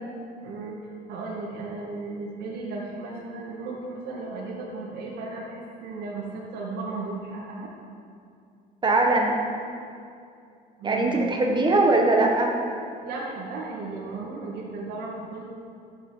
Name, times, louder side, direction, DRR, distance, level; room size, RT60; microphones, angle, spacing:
voice 1, 0.4-7.7 10.8-11.2 13.0-15.5, right 3 dB, 70° right, -5 dB, 2.2 m, -35 dB
voice 2, 8.8-9.4 10.8-12.5, right 2 dB, 25° right, 1 dB, 1.4 m, -21 dB
12.5 x 8.2 x 4.8 m, 2.4 s
cardioid pair, 110°, 17 cm